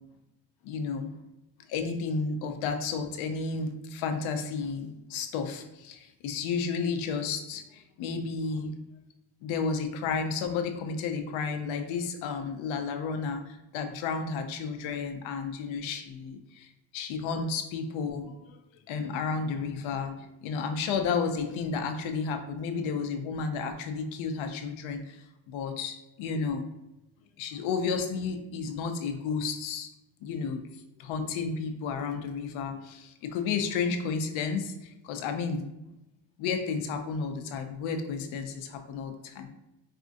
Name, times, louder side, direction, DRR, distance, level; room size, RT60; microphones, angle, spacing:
voice 1, 0.6-1.2 1.7-8.7 9.4-18.6 18.9-26.7 27.4-29.9 30.2-30.6 31.0-35.6 36.4-39.5, left 5 dB, 75° left, 6 dB, 0.6 m, -32 dB
4.3 x 2.5 x 2.5 m, 0.93 s
cardioid pair, 165°, 48 cm